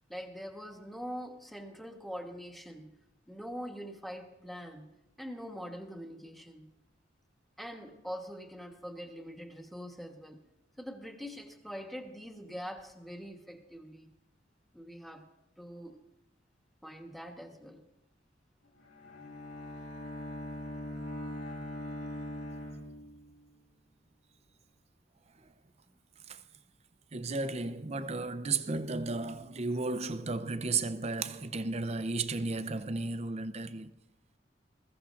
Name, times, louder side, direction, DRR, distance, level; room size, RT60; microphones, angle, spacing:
voice 1, 0.1-6.7 7.6-10.4 10.8-14.1 14.7-15.3 15.6-16.0 16.8-17.9, equal, ahead, 1.2 m, -44 dB
Bowed string instrument, 18.8-23.5, left 1 dB, 90° left, 2.5 m, -41 dB
voice 2, 27.1-33.9, right 3 dB, 35° right, 0.6 m, -34 dB
21.0 x 15.5 x 2.5 m
head